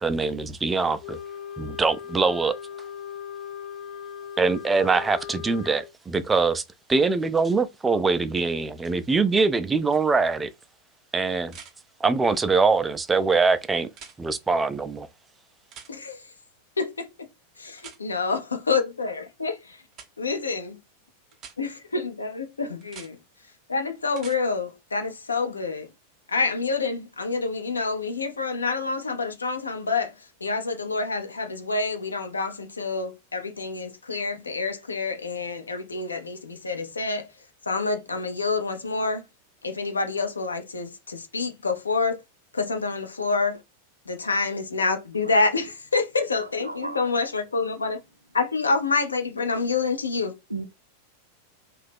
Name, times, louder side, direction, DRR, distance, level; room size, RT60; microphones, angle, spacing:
voice 1, 0.0-1.2 1.6-2.5 4.4-6.6 6.9-10.5 11.1-11.5 12.0-13.9 14.2-15.1, right 4 dB, 15° right, 0.3 m, -23 dB
Wind instrument woodwind instrument, 1.0-5.9, left 8 dB, 40° left, 0.8 m, -38 dB
sound 1, 9.9-10.0 11.5-11.7 13.9-14.2 15.7-15.9 17.8-18.0 19.9-20.1 21.3-21.6 22.8-23.1 24.1-24.4 26.4-26.5, right 7 dB, 35° right, 0.7 m, -44 dB
voice 2, 15.9-16.2 16.8-17.1 17.6-19.5 20.2-20.8 21.6-21.7 22.1-23.2 23.7-25.9 26.3-30.1 30.4-37.3 37.7-39.2 39.6-42.2 42.5-43.6 44.1-48.0 48.3-50.3, left 4 dB, 75° left, 0.6 m, -27 dB
voice 3, 46.4-47.0 50.5-50.6, right 2 dB, 85° right, 0.4 m, -34 dB
2.7 x 2.3 x 3.4 m
figure-of-eight pair, 90°, 0 cm